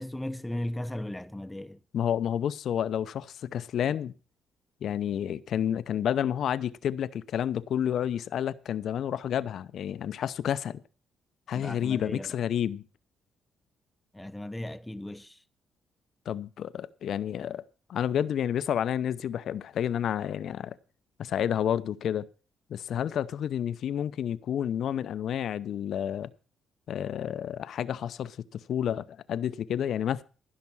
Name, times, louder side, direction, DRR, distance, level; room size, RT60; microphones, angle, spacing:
voice 1, 0.0-1.8 11.5-12.3 14.1-15.4, left 1 dB, 10° left, 0.8 m, -36 dB
voice 2, 1.9-4.1 4.8-10.8 11.5-12.8 16.3-17.6 17.9-20.7 21.2-22.3 22.7-26.3 26.9-30.2, left 9 dB, 70° left, 0.7 m, -30 dB
15.5 x 5.9 x 7.1 m
cardioid pair, 90°, 0 cm